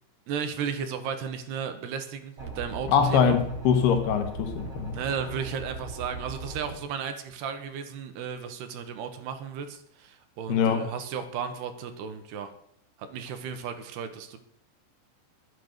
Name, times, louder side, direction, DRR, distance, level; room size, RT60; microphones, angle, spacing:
voice 1, 0.3-3.4 4.9-12.5 13.0-14.4, right 7 dB, 75° right, 3.0 m, -34 dB
sound 1, 2.4-6.8, right 3 dB, 30° right, 5.0 m, -39 dB
voice 2, 2.9-5.0 10.5-10.9, left 7 dB, 70° left, 3.1 m, -23 dB
21.5 x 8.0 x 6.6 m
omnidirectional pair, 5.2 m